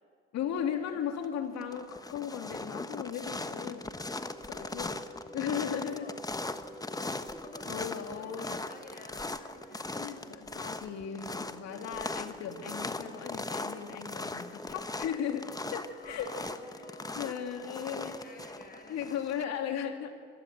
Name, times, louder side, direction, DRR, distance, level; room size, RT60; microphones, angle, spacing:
voice 1, 0.3-3.8 4.5-4.9 5.3-6.2 7.7-8.6 10.0-16.3 17.2-18.1 18.9-20.2, left 8 dB, 60° left, 5 dB, 2.8 m, -36 dB
sound 1, 0.9-1.2 1.6-19.4, left 2 dB, 10° left, 1.2 m, -39 dB
sound 2, 3.7-18.7, right 1 dB, 5° right, 7.1 m, -51 dB
voice 2, 5.6-6.2 6.9-10.0 15.9-17.5 17.8-19.8, left 2 dB, 30° left, 3 dB, 7.3 m, -52 dB
25.0 x 18.5 x 7.5 m, 2.1 s
hypercardioid pair, 70°, 30 cm